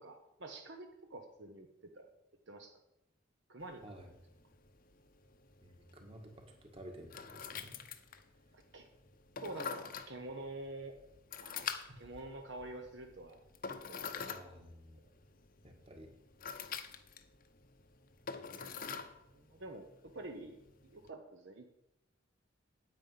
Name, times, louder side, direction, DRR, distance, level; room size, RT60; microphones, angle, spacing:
voice 1, 0.0-2.1 2.5-2.8 3.5-3.8 8.5-8.8 9.4-11.0 11.4-11.6 12.0-13.4 13.7-14.3 18.5-18.8 19.3-21.7, right 2 dB, 65° right, 4 dB, 1.0 m, -48 dB
sound 1, 3.6-21.1, left 6 dB, 45° left, 0.8 m, -47 dB
voice 2, 5.6-7.8 11.8-12.1 14.3-15.0 15.6-16.1, right 1 dB, 30° right, 3 dB, 1.7 m, -53 dB
9.3 x 8.7 x 5.7 m, 0.85 s
head